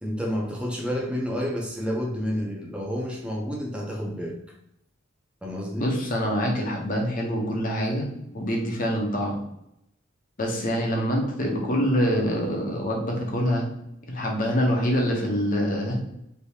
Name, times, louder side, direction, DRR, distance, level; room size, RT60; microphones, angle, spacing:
voice 1, 0.0-4.4 5.4-5.8, equal, 5° right, -2 dB, 0.6 m, -29 dB
voice 2, 5.8-9.4 10.4-13.7 14.1-15.9, equal, 40° left, 0 dB, 0.7 m, -25 dB
3.3 x 2.7 x 2.7 m, 0.79 s
head